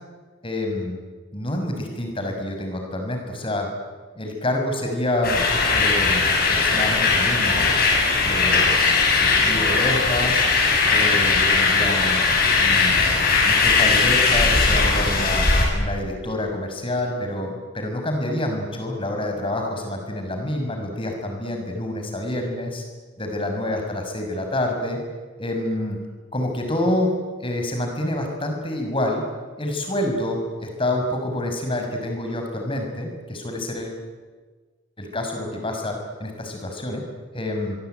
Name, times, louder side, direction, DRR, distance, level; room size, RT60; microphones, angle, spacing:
voice 1, 0.4-1.0 1.3-3.7 4.2-5.4 5.7-7.7 8.2-8.7 9.1-10.4 10.9-12.2 12.6-15.4 15.7-22.8 23.2-25.0 25.4-26.0 26.3-27.1 27.4-29.2 29.6-34.0 35.0-35.9 36.2-37.0 37.3-37.8, left 1 dB, 30° left, 4 dB, 6.3 m, -27 dB
sound 1, 5.2-15.7, left 4 dB, 55° left, 7.7 m, -19 dB
25.0 x 23.0 x 9.4 m, 1.4 s
head